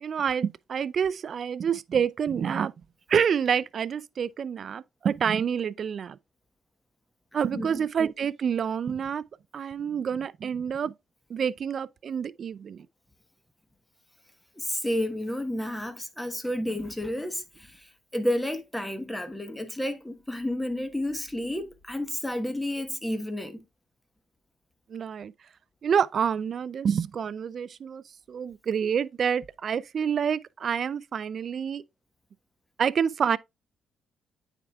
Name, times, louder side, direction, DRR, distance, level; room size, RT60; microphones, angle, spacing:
voice 1, 0.0-2.7 3.1-6.2 7.3-9.2 9.5-10.9 11.3-12.9 24.9-25.3 25.8-28.0 28.3-31.8 32.8-33.4, right 7 dB, 55° right, 0.3 m, -27 dB
voice 2, 7.5-7.9 14.5-23.6, left 1 dB, 5° left, 1.2 m, -31 dB
9.1 x 4.6 x 2.3 m
cardioid pair, 80°, 0 cm